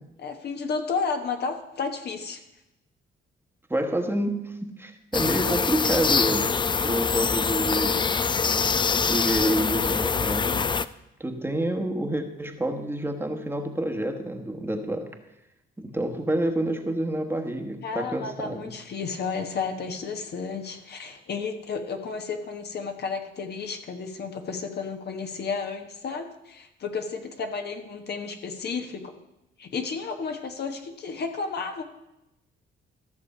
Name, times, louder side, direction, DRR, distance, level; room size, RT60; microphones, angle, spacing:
voice 1, 0.2-2.4 17.8-29.1 29.6-31.8, left 5 dB, 55° left, 5 dB, 1.3 m, -32 dB
voice 2, 3.7-6.5 6.8-8.1 9.0-10.7 11.2-15.1 15.8-18.7, right 1 dB, 10° right, 4 dB, 1.3 m, -28 dB
sound 1, 5.1-10.9, left 5 dB, 25° left, 0.4 m, -24 dB
14.0 x 6.6 x 5.5 m, 0.91 s
cardioid pair, 90°, 20 cm